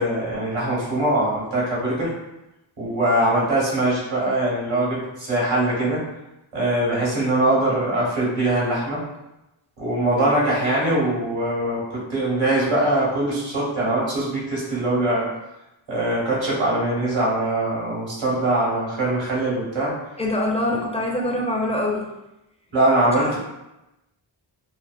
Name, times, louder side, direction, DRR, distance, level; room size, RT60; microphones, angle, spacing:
voice 1, 0.0-2.1 2.8-6.0 6.5-9.0 9.8-15.3 15.9-19.9 22.7-23.4, right 1 dB, 70° right, -6 dB, 1.1 m, -22 dB
voice 2, 20.2-22.1 23.2-23.4, left 1 dB, 15° left, -1 dB, 0.4 m, -24 dB
2.5 x 2.3 x 2.3 m, 0.94 s
wide cardioid pair, 50°, 47 cm